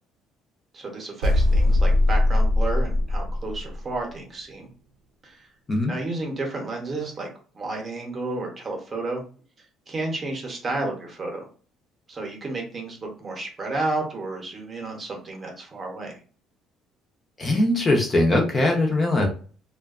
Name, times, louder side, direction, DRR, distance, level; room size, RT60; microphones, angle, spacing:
voice 1, 0.7-4.7 5.2-5.5 5.9-7.3 7.5-9.2 9.9-11.5 12.1-16.1, right 2 dB, 30° right, 1 dB, 0.7 m, -31 dB
sound 1, 1.2-3.9, left 1 dB, 85° right, 0.5 m, -20 dB
voice 2, 17.4-19.3, left 2 dB, 25° left, 1 dB, 0.5 m, -21 dB
2.4 x 2.2 x 2.4 m, 0.40 s
cardioid pair, 140°, 0 cm